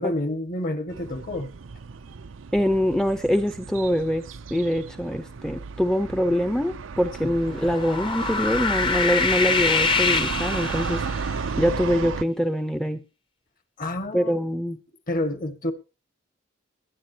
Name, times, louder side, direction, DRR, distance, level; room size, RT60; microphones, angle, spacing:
voice 1, 0.0-1.5 7.2-7.3 13.8-14.4 15.1-15.7, left 1 dB, 45° left, 10 dB, 1.8 m, -29 dB
sound 1, 0.9-12.2, right 5 dB, 85° right, 0.6 m, -34 dB
voice 2, 2.5-11.0 11.6-13.0 14.1-14.8, equal, 5° left, 10 dB, 0.7 m, -24 dB
sound 2, 7.5-11.3, left 4 dB, 25° left, 0.9 m, -25 dB
20.5 x 10.5 x 2.9 m, 0.29 s
head